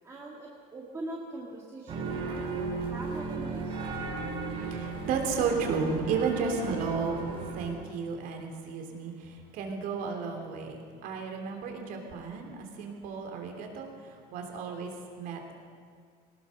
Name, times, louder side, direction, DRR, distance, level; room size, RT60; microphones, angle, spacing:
voice 1, 0.0-3.8, right 2 dB, 15° right, -3 dB, 2.0 m, -42 dB
sound 1, 1.9-7.7, right 4 dB, 30° right, 5.8 m, -35 dB
voice 2, 4.1-15.5, right 5 dB, 50° right, 3 dB, 3.3 m, -33 dB
22.5 x 19.0 x 6.6 m, 2.1 s
cardioid pair, 180°, 18 cm